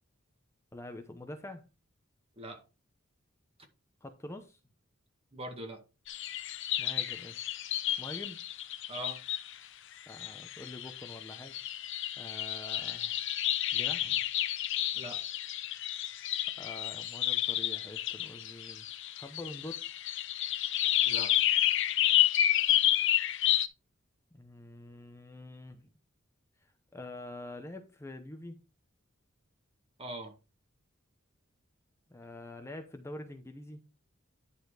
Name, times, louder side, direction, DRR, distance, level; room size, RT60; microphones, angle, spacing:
voice 1, 0.7-1.6 4.0-4.6 6.8-7.6 8.0-8.4 10.1-11.5 12.2-13.3 13.7-14.2 16.6-18.9 19.1-19.8 24.3-25.9 26.6-28.6 32.1-33.8, left 1 dB, 15° left, 0.8 m, -46 dB
voice 2, 5.3-5.8 8.9-9.2 14.9-15.2 21.1-21.4 30.0-30.4, right 1 dB, 30° right, 1.9 m, -41 dB
sound 1, 6.1-9.5 10.1-23.7, left 12 dB, 65° left, 0.8 m, -30 dB
10.5 x 4.3 x 4.8 m
head